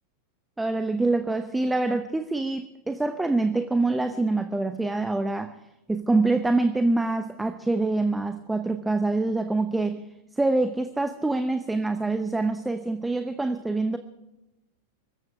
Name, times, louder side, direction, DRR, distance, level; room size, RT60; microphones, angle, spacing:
voice 1, 0.6-5.5 5.9-10.0 10.3-14.0, right 2 dB, 5° right, 9 dB, 0.8 m, -25 dB
24.5 x 14.5 x 3.6 m, 0.93 s
figure-of-eight pair, 90°, 0 cm